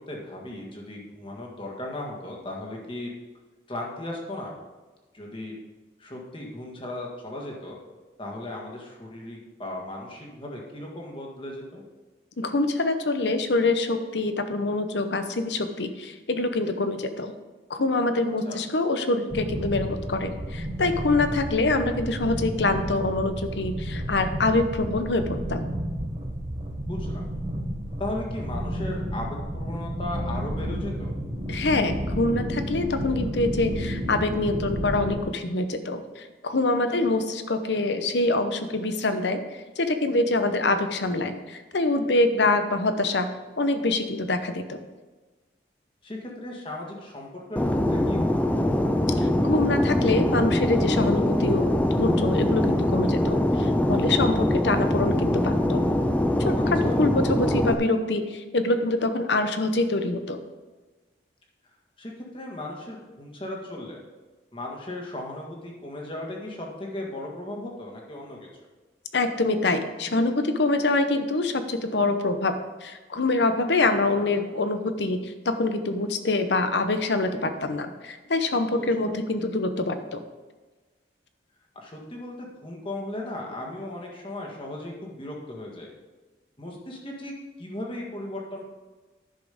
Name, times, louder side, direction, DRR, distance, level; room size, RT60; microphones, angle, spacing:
voice 1, 0.1-3.1 3.7-4.5 5.1-5.5 6.0-7.8 8.2-11.8 18.5-18.6 26.8-27.2 28.0-31.1 36.9-37.0 46.0-48.5 56.5-57.0 62.0-64.0 64.5-68.5 73.8-73.9 74.2-74.3 78.8-79.1 81.7-85.9 86.6-87.3 87.6-88.6, left 1 dB, 30° left, -1 dB, 1.7 m, -36 dB
voice 2, 12.4-17.3 17.7-25.2 25.5-25.7 31.5-39.4 39.8-43.3 43.6-44.8 49.2-55.8 56.4-60.4 69.1-72.5 72.8-80.2, left 2 dB, 70° left, 9 dB, 0.8 m, -25 dB
sound 1, 19.3-35.2, equal, 30° right, 1.1 m, -31 dB
Fixed-wing aircraft airplane, 47.6-57.7, left 1 dB, 10° left, 0.5 m, -23 dB
10.5 x 6.3 x 5.1 m, 1.3 s
head